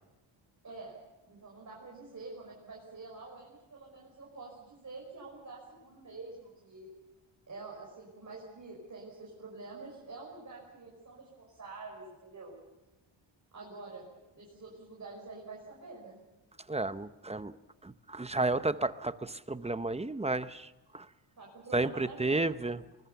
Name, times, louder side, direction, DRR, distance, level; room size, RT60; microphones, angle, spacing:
voice 1, 0.6-1.0 1.2-6.9 7.5-12.5 13.5-14.0 14.3-16.2 21.4-22.4, right 3 dB, 40° right, -3 dB, 5.9 m, -47 dB
voice 2, 16.7-17.5 17.8-20.7 20.9-21.1 21.7-22.8, right 2 dB, 15° right, 13 dB, 0.7 m, -32 dB
24.0 x 20.5 x 7.0 m, 1.0 s
wide cardioid pair, 110°, 46 cm